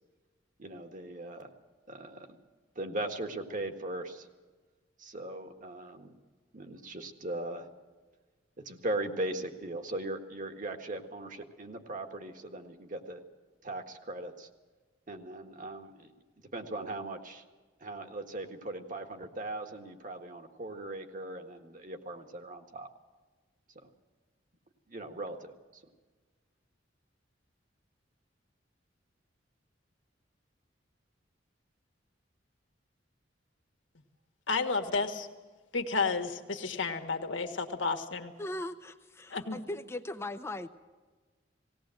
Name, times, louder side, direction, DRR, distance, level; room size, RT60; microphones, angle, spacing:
voice 1, 0.6-1.5 1.9-2.3 2.7-4.3 5.0-6.1 6.5-7.7 8.6-13.2 13.6-14.5 15.1-16.1 16.5-17.4 17.8-22.9 23.8-23.9 24.9-25.8, right 2 dB, 45° right, 6 dB, 1.7 m, -39 dB
voice 2, 34.5-35.3 35.7-38.3 39.3-39.6, left 4 dB, 85° left, 5 dB, 1.8 m, -31 dB
voice 3, 38.4-40.7, left 1 dB, 15° left, 7 dB, 0.6 m, -39 dB
19.0 x 17.5 x 7.8 m, 1.3 s
head